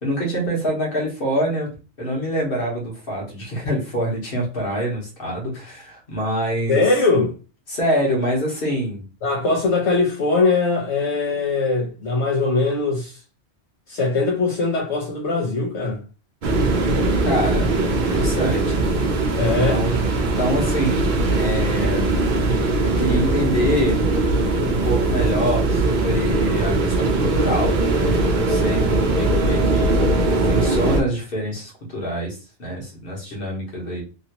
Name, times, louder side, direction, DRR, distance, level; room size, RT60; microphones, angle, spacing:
voice 1, 0.0-1.7 2.0-6.8 7.7-9.0 17.2-17.7 18.1-18.8 19.4-22.1 22.8-24.0 24.6-34.0, equal, 55° left, 1.4 m, -25 dB
voice 2, 6.7-7.3 9.2-13.2 13.9-16.0 19.4-19.8, left 3 dB, 80° left, 1.1 m, -21 dB
sound 1, 16.4-31.0, right 2 dB, 55° right, 0.6 m, -20 dB
3.0 x 2.7 x 2.8 m
omnidirectional pair, 1.2 m